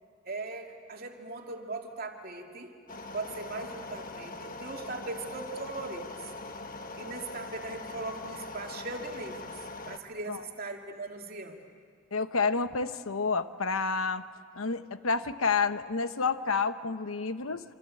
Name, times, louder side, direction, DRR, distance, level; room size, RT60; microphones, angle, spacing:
voice 1, 0.2-2.7 3.1-6.3 6.7-11.7, right 3 dB, 45° right, 2 dB, 2.6 m, -39 dB
sound 1, 2.9-10.0, left 3 dB, 40° left, 1.2 m, -42 dB
voice 2, 12.1-14.2 14.6-17.6, left 4 dB, 80° left, 10 dB, 1.0 m, -29 dB
26.5 x 26.0 x 8.6 m, 2.2 s
head